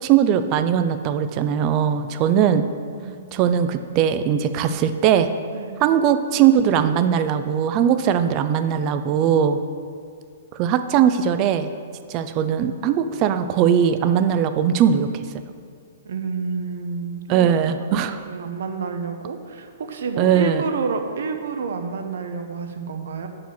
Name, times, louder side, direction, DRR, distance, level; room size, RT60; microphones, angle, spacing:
voice 1, 0.0-2.6 3.3-5.3 5.8-9.6 10.5-11.7 12.1-15.1 17.3-18.2 20.2-20.6, right 8 dB, 20° right, 10 dB, 0.3 m, -19 dB
voice 2, 16.0-17.5 17.8-18.0 18.3-23.3, right 5 dB, 60° right, 6 dB, 0.8 m, -29 dB
7.5 x 4.8 x 7.0 m, 2.2 s
hypercardioid pair, 175°, 0 cm